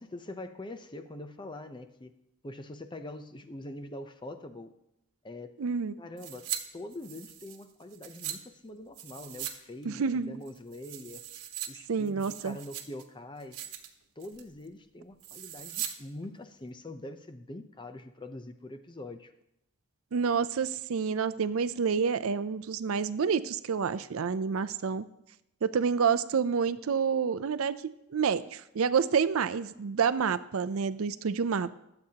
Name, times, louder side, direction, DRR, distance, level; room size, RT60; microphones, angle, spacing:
voice 1, 0.0-2.2 2.4-4.7 5.2-5.6 6.0-11.2 11.7-13.6 14.2-19.3, left 1 dB, 20° left, 8 dB, 0.6 m, -44 dB
voice 2, 5.6-5.9 9.9-10.4 11.9-12.6 20.1-25.0 25.6-27.7 28.1-31.8, right 6 dB, 65° right, 14 dB, 0.4 m, -28 dB
sound 1, 6.2-6.6 6.9-8.4 8.9-9.6 9.8-9.9 10.4-11.7 12.1-13.0 13.4-13.9 14.2-14.5 15.2-15.9 16.2-16.3, right 11 dB, 85° right, 1.2 m, -40 dB
21.5 x 7.9 x 2.9 m, 0.84 s
head